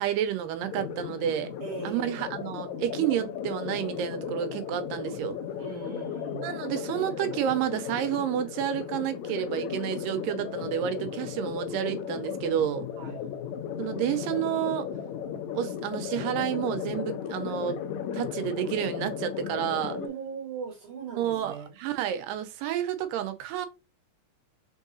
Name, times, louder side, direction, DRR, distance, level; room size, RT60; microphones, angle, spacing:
voice 1, 0.0-1.5 1.8-5.4 6.4-12.8 13.8-14.9 15.5-17.8 18.1-20.0 21.1-23.7, right 10 dB, 90° right, 2.3 m, -30 dB
sound 1, 0.6-20.1, left 8 dB, 80° left, 1.7 m, -35 dB
voice 2, 1.6-2.3 5.6-6.5 13.0-13.2 19.9-21.7, right 6 dB, 65° right, 1.4 m, -39 dB
5.4 x 3.7 x 2.6 m
omnidirectional pair, 3.9 m